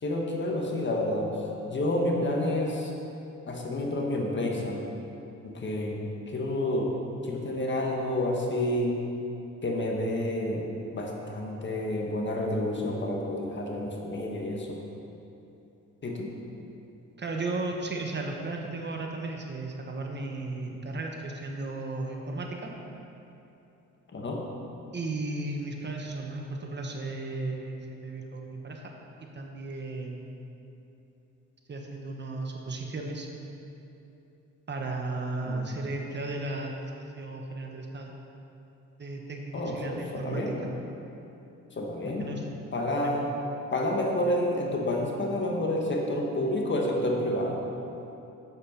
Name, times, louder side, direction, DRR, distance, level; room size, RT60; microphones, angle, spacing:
voice 1, 0.0-1.3 1.6-2.9 3.5-4.9 5.4-6.9 7.2-9.1 9.6-10.7 10.9-14.8 16.0-16.3 24.1-24.4 35.4-35.7 39.5-40.6 41.7-42.3 42.7-43.3 43.7-47.6, left 1 dB, 40° left, 0 dB, 1.6 m, -29 dB
voice 2, 17.2-22.7 24.9-28.9 29.2-30.4 31.7-33.3 34.7-38.1 39.0-40.6 42.0-42.4 43.0-43.2, right 2 dB, 35° right, 1 dB, 1.2 m, -35 dB
8.1 x 8.0 x 5.5 m, 2.9 s
cardioid pair, 90°, 30 cm